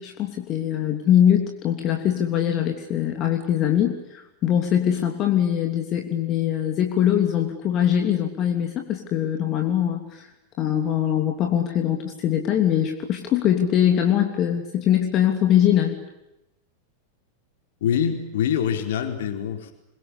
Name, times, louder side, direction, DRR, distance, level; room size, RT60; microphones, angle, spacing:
voice 1, 0.0-10.3 10.6-16.0, left 10 dB, 35° left, 4 dB, 3.1 m, -22 dB
voice 2, 17.8-19.7, left 8 dB, 55° left, 6 dB, 4.3 m, -24 dB
27.0 x 23.5 x 8.6 m, 0.90 s
figure-of-eight pair, 90°, 0 cm